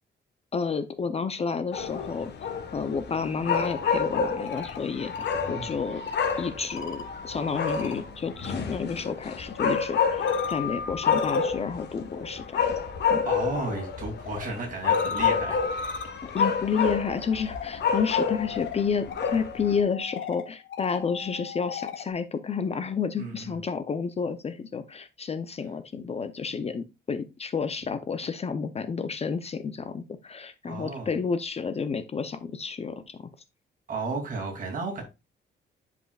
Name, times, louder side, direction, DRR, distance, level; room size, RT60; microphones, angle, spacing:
voice 1, 0.5-2.3 2.7-6.0 6.4-12.8 13.1-13.2 16.2-33.3, left 5 dB, 35° left, 0.6 m, -30 dB
sound 1, 1.7-19.8, left 6 dB, 65° left, 1.3 m, -29 dB
sound 2, 3.3-8.5 8.8-22.1, left 6 dB, 90° left, 1.4 m, -39 dB
voice 2, 5.3-5.7 13.2-15.6 23.2-23.6 30.7-31.1 33.9-35.0, right 3 dB, 45° right, 2.8 m, -33 dB
11.0 x 5.0 x 2.4 m
cardioid pair, 135°, 19 cm